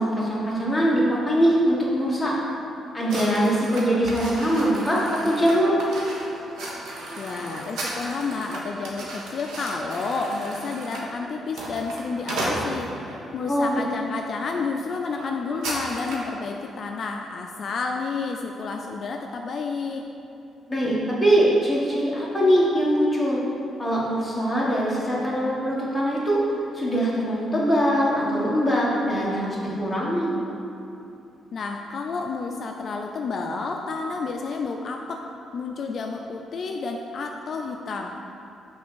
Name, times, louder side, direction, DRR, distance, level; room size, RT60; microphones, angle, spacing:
voice 1, 0.0-2.3 2.9-5.7 13.5-13.8 20.7-23.4 23.8-26.4 26.7-30.3, equal, ahead, -7 dB, 1.6 m, -22 dB
sound 1, 3.1-13.2 13.8-14.1 14.4-14.6 14.8-16.3, right 1 dB, 80° right, 1.2 m, -34 dB
voice 2, 7.2-20.0 31.5-35.2 35.5-38.1, left 4 dB, 50° left, 2 dB, 0.4 m, -30 dB
6.0 x 3.9 x 6.2 m, 2.7 s
cardioid pair, 110°, 0 cm